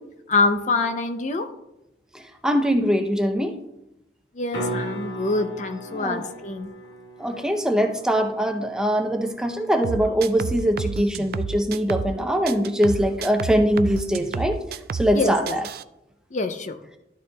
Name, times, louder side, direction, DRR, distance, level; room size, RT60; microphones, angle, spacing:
voice 1, 0.3-1.5 4.3-6.7 15.1-15.6 16.3-16.8, left 3 dB, 40° left, 8 dB, 0.5 m, -25 dB
voice 2, 2.1-3.5 5.9-6.2 7.2-14.6 14.9-15.6, equal, 5° right, 4 dB, 0.6 m, -22 dB
sound 1, 4.5-10.6 15.2-15.3, right 1 dB, 85° left, 1.3 m, -37 dB
sound 2, 9.8-12.2 12.5-15.2 15.5-15.8, right 5 dB, 55° right, 0.3 m, -30 dB
12.5 x 6.6 x 2.3 m, 0.88 s
head